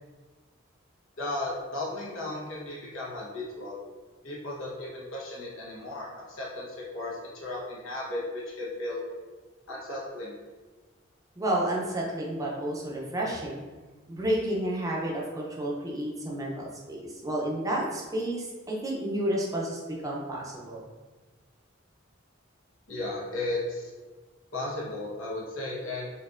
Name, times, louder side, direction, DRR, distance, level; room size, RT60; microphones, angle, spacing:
voice 1, 1.2-3.8 4.2-9.0 9.7-10.3 22.9-23.9 24.5-26.1, left 2 dB, 90° left, -5 dB, 1.0 m, -35 dB
voice 2, 11.4-13.6 14.1-20.8, right 1 dB, 15° right, -3 dB, 0.5 m, -31 dB
4.2 x 2.6 x 2.4 m, 1.3 s
head